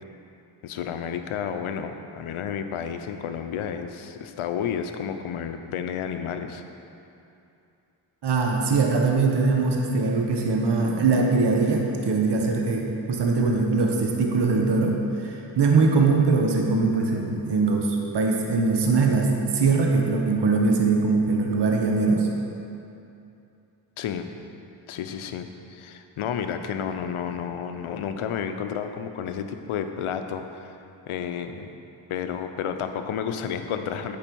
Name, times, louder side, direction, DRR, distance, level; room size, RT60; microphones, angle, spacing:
voice 1, 0.6-6.6 24.0-24.3 24.9-30.8 31.1-31.7 32.1-34.2, left 8 dB, 85° left, 8 dB, 0.6 m, -31 dB
voice 2, 8.2-22.3, right 4 dB, 55° right, 1 dB, 1.0 m, -22 dB
8.7 x 5.3 x 4.6 m, 2.7 s
cardioid pair, 60°, 48 cm